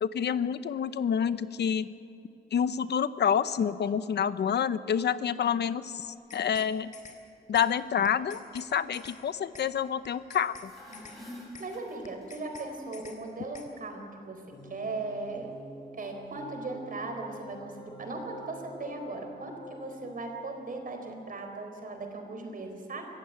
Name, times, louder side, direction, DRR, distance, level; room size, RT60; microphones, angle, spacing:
voice 1, 0.0-1.9 2.5-6.9 7.5-10.7, left 8 dB, 75° left, 14 dB, 0.8 m, -28 dB
sound 1, 6.1-6.7 6.9-7.2 7.5-7.7 8.0-8.7 8.9-9.2 9.5-9.7 10.0-10.7 10.9-11.2 11.5-11.7 12.0-12.7 12.9-13.2 13.5-13.7, left 5 dB, 45° left, 3.3 m, -48 dB
sound 2, 10.5-12.6, left 1 dB, ahead, 7.3 m, -47 dB
voice 2, 11.6-14.4 14.7-15.5 16.0-23.1, right 3 dB, 55° right, 4 dB, 4.2 m, -38 dB
sound 3, 14.5-21.0, equal, 25° left, 3.7 m, -47 dB
25.0 x 15.5 x 9.6 m, 2.7 s
wide cardioid pair, 125°, 18 cm